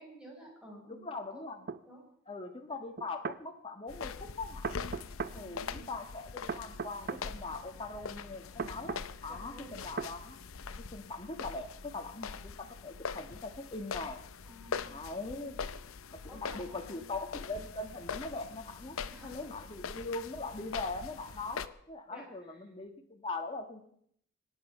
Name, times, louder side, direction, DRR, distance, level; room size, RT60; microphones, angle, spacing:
voice 1, 0.0-1.0 1.3-1.4 1.8-2.0 5.3-5.9 9.3-9.8 14.4-15.0 16.3-17.0 19.1-19.6 22.1-22.6, equal, 5° right, -2 dB, 5.6 m, -52 dB
voice 2, 0.9-1.7 2.3-4.7 5.3-8.9 9.2-14.2 14.8-15.6 16.1-23.9, left 3 dB, 25° left, 4 dB, 1.5 m, -41 dB
sound 1, 1.7-1.8 3.0-3.4 4.6-5.4 6.5-7.2 8.6-9.1 10.0-10.1, right 5 dB, 45° right, 0.6 m, -37 dB
sound 2, 3.9-21.7, left 5 dB, 70° left, 0.7 m, -43 dB
25.0 x 9.7 x 5.6 m, 0.67 s
head